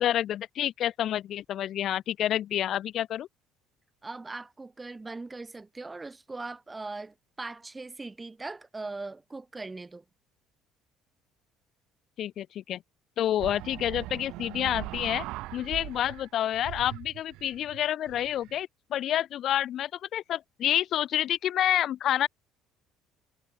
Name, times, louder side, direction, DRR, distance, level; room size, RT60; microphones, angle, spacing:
voice 1, 0.0-3.3 12.2-12.8 13.2-15.3 15.5-22.3, left 11 dB, 60° left, 0.3 m, -28 dB
voice 2, 4.0-10.0, right 3 dB, 20° right, 0.5 m, -40 dB
sound 1, 13.4-16.3 16.5-18.6, right 19 dB, 75° right, 0.7 m, -40 dB
supercardioid pair, 90°, 0 cm